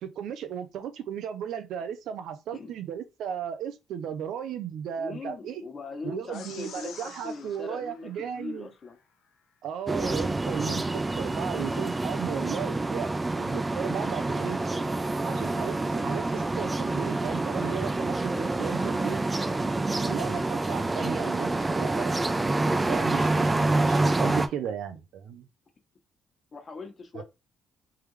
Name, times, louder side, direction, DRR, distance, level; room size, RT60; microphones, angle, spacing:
voice 1, 0.0-5.6 6.0-8.7 9.6-14.6 15.2-19.2 20.0-22.1 22.9-25.5 27.1-27.2, right 8 dB, 80° right, 0.6 m, -35 dB
voice 2, 5.0-9.0 18.3-18.6 26.5-27.2, left 3 dB, 40° left, 1.3 m, -41 dB
sound 1, 6.3-9.0, left 7 dB, 80° left, 0.8 m, -48 dB
sound 2, 9.9-24.5, right 2 dB, 20° right, 0.6 m, -27 dB
3.4 x 3.4 x 3.2 m
cardioid pair, 90°, 0 cm